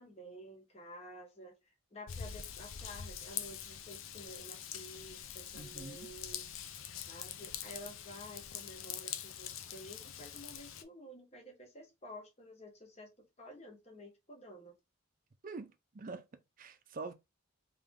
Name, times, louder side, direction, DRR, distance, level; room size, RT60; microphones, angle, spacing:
voice 1, 0.0-6.7 7.0-14.8, equal, 30° left, 1.2 m, -51 dB
Raindrop / Vehicle horn car horn honking / Trickle dribble, 2.1-10.8, left 9 dB, 65° left, 0.5 m, -44 dB
voice 2, 5.5-6.1 15.4-16.2 16.6-17.1, right 3 dB, 40° right, 0.5 m, -45 dB
3.3 x 3.0 x 3.6 m
head